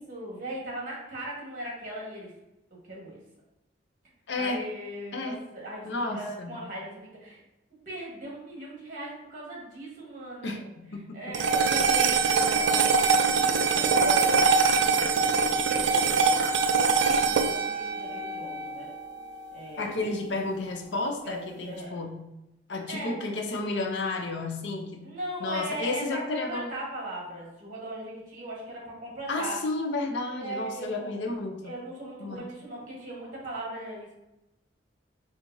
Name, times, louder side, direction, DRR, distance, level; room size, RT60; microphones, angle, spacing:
voice 1, 0.0-2.3 2.8-3.2 4.4-7.4 7.8-10.7 11.1-18.9 19.5-19.9 21.2-22.0 22.9-23.2 25.0-29.6 30.4-31.1 31.6-34.1, right 1 dB, 50° right, -3 dB, 1.3 m, -39 dB
voice 2, 4.3-4.6 5.1-5.4 5.9-6.6 10.4-11.4 19.8-22.3 22.7-25.1 25.4-26.7 29.3-31.7 32.2-32.5, left 2 dB, 70° left, 3 dB, 0.5 m, -32 dB
sound 1, 11.3-19.9, right 5 dB, 70° right, 0.3 m, -24 dB
4.5 x 2.5 x 2.6 m, 0.93 s
head